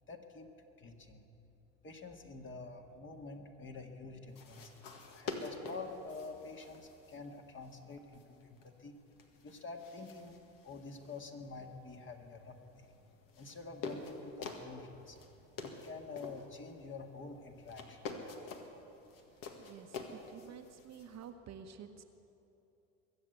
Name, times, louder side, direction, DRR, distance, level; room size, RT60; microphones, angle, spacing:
voice 1, 0.1-0.5 0.8-1.3 1.8-4.7 5.1-9.0 9.4-10.3 10.6-12.9 13.4-15.2 15.6-18.0, left 4 dB, 30° left, 4 dB, 1.9 m, -48 dB
sound 1, 4.3-21.3, left 4 dB, 60° left, 1.9 m, -49 dB
voice 2, 19.6-22.0, right 7 dB, 45° right, 6 dB, 1.1 m, -51 dB
22.0 x 7.8 x 8.2 m, 2.8 s
hypercardioid pair, 70°, 38 cm